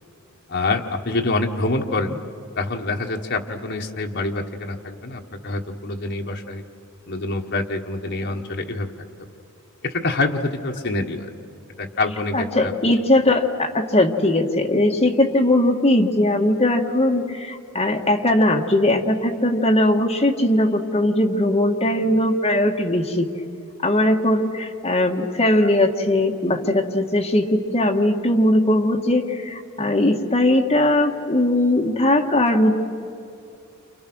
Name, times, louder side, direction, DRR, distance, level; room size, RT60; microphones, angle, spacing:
voice 1, 0.5-2.2 2.6-6.6 7.1-8.9 9.8-11.3 11.8-12.7, left 2 dB, 55° left, 2 dB, 1.5 m, -26 dB
voice 2, 12.3-23.3 23.8-32.8, left 1 dB, 30° left, 1 dB, 1.8 m, -19 dB
29.5 x 28.5 x 6.3 m, 2.5 s
head